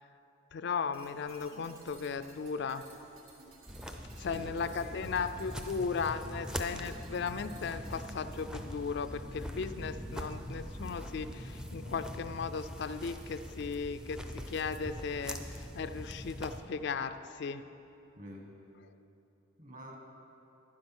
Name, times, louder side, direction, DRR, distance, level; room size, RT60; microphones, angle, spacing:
voice 1, 0.5-2.8 4.2-17.6 18.8-19.0, left 5 dB, 55° left, 11 dB, 0.4 m, -36 dB
sound 1, 0.9-8.4, right 2 dB, 80° right, 2.0 m, -56 dB
sound 2, 3.7-16.6, equal, 5° right, 0.5 m, -42 dB
voice 2, 4.2-5.2 18.2-18.5 19.6-20.0, equal, 40° right, 1 dB, 1.5 m, -48 dB
11.0 x 9.7 x 6.0 m, 2.9 s
head